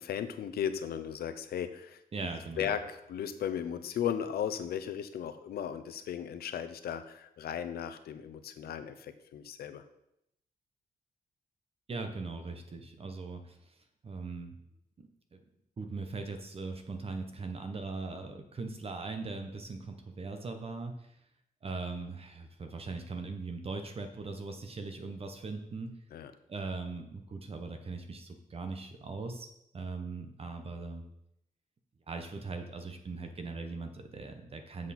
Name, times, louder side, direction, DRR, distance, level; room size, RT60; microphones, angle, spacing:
voice 1, 0.0-2.0 2.6-9.8 26.1-26.3, left 9 dB, 90° left, 11 dB, 0.7 m, -36 dB
voice 2, 2.1-2.7 11.9-13.7 14.0-14.6 15.0-15.4 15.8-21.1 21.6-25.9 26.5-29.5 29.7-31.0 32.1-34.9, right 3 dB, 40° right, 6 dB, 1.0 m, -40 dB
7.8 x 7.5 x 4.3 m, 0.79 s
cardioid pair, 115°, 16 cm